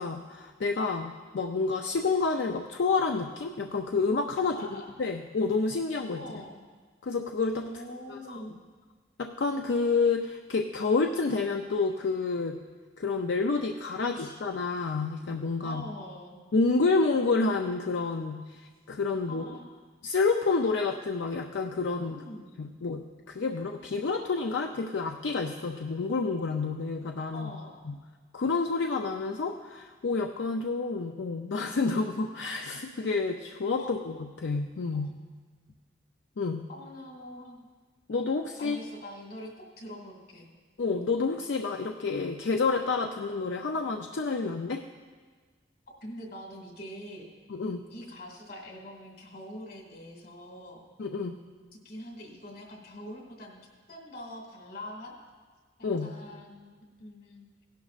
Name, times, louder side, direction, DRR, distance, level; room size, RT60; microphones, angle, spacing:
voice 1, 0.0-4.6 5.0-6.2 7.0-7.7 8.1-8.4 9.2-12.6 13.0-15.8 16.5-19.5 20.0-22.2 22.6-27.5 27.9-28.0 28.3-35.1 36.4-36.7 38.1-38.8 40.8-44.8 47.5-47.8 51.0-51.4 55.8-56.1, left 4 dB, 75° left, 4 dB, 0.5 m, -29 dB
voice 2, 4.4-4.9 6.1-6.6 7.6-8.6 14.2-14.4 15.6-16.4 19.3-19.8 22.1-22.7 27.3-27.7 33.8-33.9 34.9-35.0 36.7-37.7 38.6-40.5 46.0-47.3 47.9-50.8 51.8-53.6 53.9-55.1 56.0-57.4, equal, 55° left, 0 dB, 2.1 m, -44 dB
17.0 x 11.5 x 2.5 m, 1.5 s
head